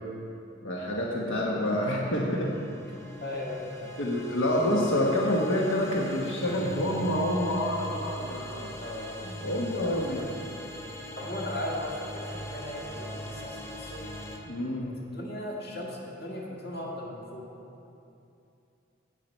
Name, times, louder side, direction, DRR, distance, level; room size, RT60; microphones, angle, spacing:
voice 1, 0.6-2.5 4.0-8.7 9.2-10.2 14.4-14.9, left 1 dB, 85° left, -3 dB, 1.2 m, -28 dB
sound 1, 2.1-14.4, equal, 15° left, 1.0 m, -41 dB
voice 2, 3.0-3.9 8.8-10.4 11.2-14.0 14.8-17.4, left 1 dB, 60° left, -3 dB, 1.9 m, -38 dB
17.0 x 6.7 x 4.4 m, 2.7 s
head